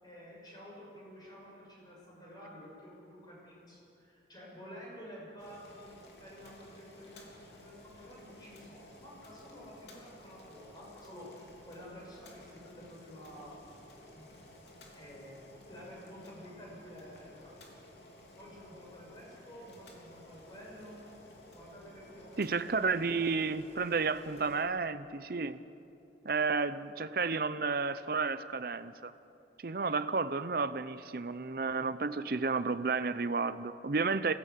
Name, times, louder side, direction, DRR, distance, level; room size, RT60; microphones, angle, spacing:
voice 1, 0.0-13.6 14.1-14.3 14.9-17.8 18.3-21.0 21.5-23.2 24.4-24.5, equal, 25° left, 6.6 m, -51 dB
Boiling, 5.4-24.6, left 1 dB, 70° left, 3.5 m, -55 dB
voice 2, 22.4-25.6 26.2-29.1 29.6-34.3, right 4 dB, 55° right, 0.6 m, -32 dB
22.5 x 15.5 x 8.3 m
head